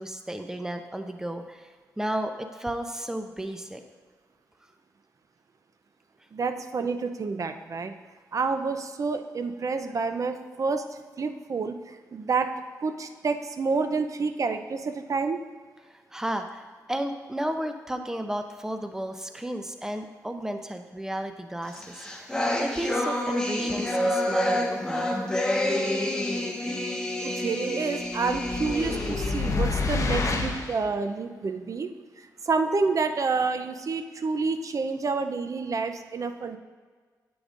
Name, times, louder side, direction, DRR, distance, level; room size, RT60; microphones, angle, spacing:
voice 1, 0.0-1.7 2.0-3.8 16.1-25.1 26.5-26.6, right 1 dB, 5° right, 7 dB, 0.7 m, -33 dB
voice 2, 6.3-7.9 8.3-10.8 11.2-12.5 12.8-15.4 27.2-31.9 32.4-36.6, right 4 dB, 50° right, 8 dB, 0.6 m, -28 dB
sound 1, 21.7-29.6, left 1 dB, 10° left, 1.3 m, -28 dB
sound 2, 28.2-30.8, left 3 dB, 50° left, 1.0 m, -28 dB
9.8 x 7.9 x 2.5 m, 1.5 s
cardioid pair, 60°, 7 cm